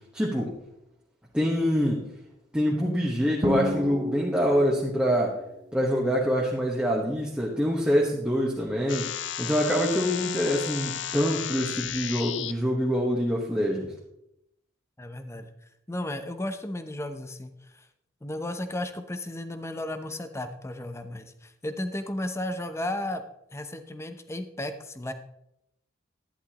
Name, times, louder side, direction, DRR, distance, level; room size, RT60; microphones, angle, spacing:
voice 1, 0.1-0.6 1.3-2.1 2.5-5.4 5.7-9.1 9.4-13.9, equal, 5° right, -5 dB, 1.3 m, -25 dB
Drum, 3.4-5.1, equal, 25° right, 0.9 m, -30 dB
sound 1, 8.9-12.5, left 10 dB, 65° left, 0.5 m, -34 dB
voice 2, 15.0-15.5 15.9-17.8 18.2-23.2 23.5-25.1, left 1 dB, 15° left, 9 dB, 0.7 m, -34 dB
11.5 x 10.5 x 3.0 m, 0.82 s
head